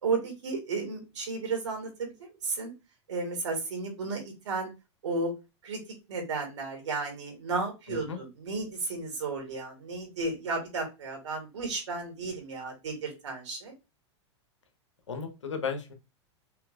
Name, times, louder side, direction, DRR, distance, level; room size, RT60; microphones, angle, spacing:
voice 1, 0.0-2.7 3.1-4.7 5.0-5.3 5.6-5.8 6.1-13.7, right 3 dB, 80° right, 1 dB, 2.5 m, -33 dB
voice 2, 7.9-8.2 15.1-15.9, left 6 dB, 90° left, 6 dB, 1.1 m, -34 dB
5.7 x 3.5 x 2.5 m, 0.26 s
hypercardioid pair, 105°, 15 cm